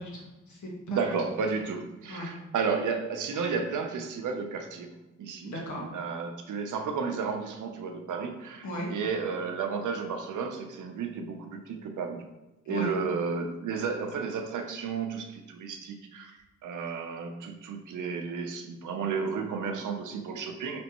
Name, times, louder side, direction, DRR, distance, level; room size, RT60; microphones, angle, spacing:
voice 1, 0.0-1.0 2.1-2.3 5.4-5.8 8.6-8.9 12.6-12.9, equal, 70° left, -3 dB, 1.5 m, -37 dB
voice 2, 0.9-4.9 5.2-5.5 5.9-12.2 12.7-20.8, right 5 dB, 75° right, 4 dB, 0.7 m, -32 dB
5.3 x 3.4 x 3.0 m, 1.0 s
cardioid pair, 115°, 31 cm